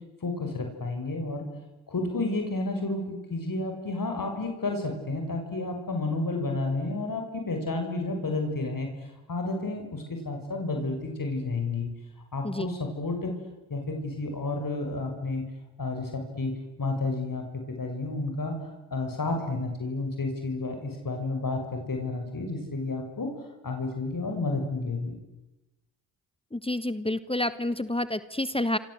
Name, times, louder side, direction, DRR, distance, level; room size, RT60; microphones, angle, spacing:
voice 1, 0.2-1.5 1.9-8.9 9.3-11.9 12.3-13.3 13.7-15.4 15.8-16.5 16.8-17.4 17.8-18.5 18.9-23.3 23.6-25.1, left 3 dB, 45° left, 3 dB, 6.8 m, -31 dB
voice 2, 26.5-28.8, left 1 dB, 10° left, 14 dB, 1.3 m, -29 dB
29.0 x 25.0 x 8.0 m, 1.0 s
hypercardioid pair, 40°, 45 cm